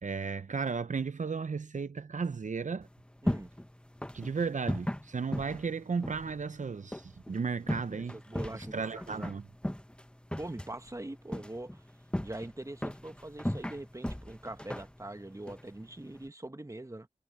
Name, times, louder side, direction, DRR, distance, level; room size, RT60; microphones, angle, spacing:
voice 1, 0.0-2.9 4.1-8.2 8.5-9.4, right 5 dB, 70° right, 0.5 m, -34 dB
sound 1, 2.8-16.3, equal, 10° left, 1.0 m, -39 dB
voice 2, 8.1-9.4 10.4-11.9 12.2-17.1, right 1 dB, 25° right, 1.1 m, -43 dB
wide cardioid pair, 55°, 13 cm